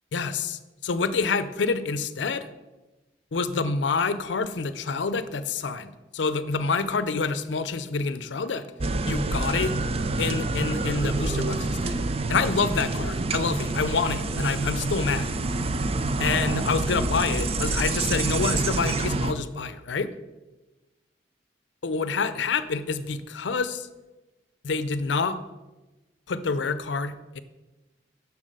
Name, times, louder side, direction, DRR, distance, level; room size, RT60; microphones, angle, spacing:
voice 1, 0.1-2.5 3.3-8.6 9.1-9.7 10.2-11.9 12.3-15.3 16.2-20.1 21.8-23.9 24.6-25.4 26.3-27.4, left 4 dB, 85° left, 13 dB, 0.5 m, -27 dB
sound 1, 8.8-19.3, right 2 dB, 35° right, 0.5 m, -27 dB
7.4 x 6.0 x 6.6 m, 1.1 s
head